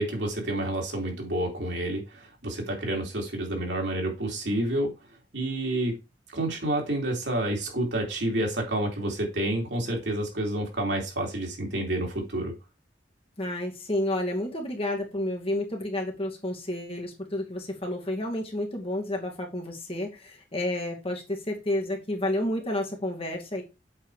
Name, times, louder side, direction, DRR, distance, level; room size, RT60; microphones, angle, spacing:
voice 1, 0.0-4.9 5.3-6.0 6.3-12.5, right 1 dB, 80° right, 0 dB, 3.0 m, -29 dB
voice 2, 13.4-23.6, left 1 dB, 35° left, 0 dB, 2.2 m, -30 dB
7.8 x 4.6 x 4.8 m, 0.27 s
head